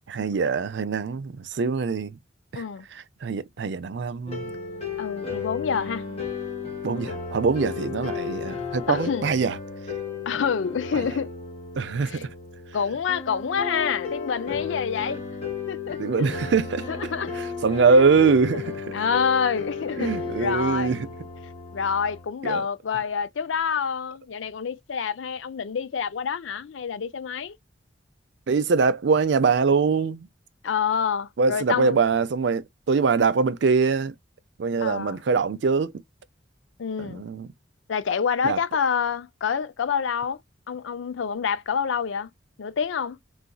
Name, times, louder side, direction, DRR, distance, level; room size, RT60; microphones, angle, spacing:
voice 1, 0.1-2.2 2.5-2.6 3.2-4.5 6.8-9.5 11.8-12.3 16.0-16.8 17.4-18.9 20.0-21.1 22.4-22.6 28.5-30.3 31.4-34.1 34.6-35.9 37.0-37.5 38.4-38.6, right 5 dB, 65° right, 0.4 m, -23 dB
voice 2, 2.5-2.9 5.0-6.1 8.9-9.3 10.3-11.3 12.0-12.2 12.7-15.2 15.7-16.3 16.9-17.3 18.5-18.7 18.9-20.9 21.7-27.6 30.6-32.0 34.8-35.2 36.8-37.2 37.9-40.4 40.7-42.3 42.6-43.2, left 6 dB, 80° left, 0.5 m, -27 dB
sound 1, 4.3-22.3, left 5 dB, 30° left, 1.3 m, -34 dB
3.9 x 2.4 x 2.2 m
head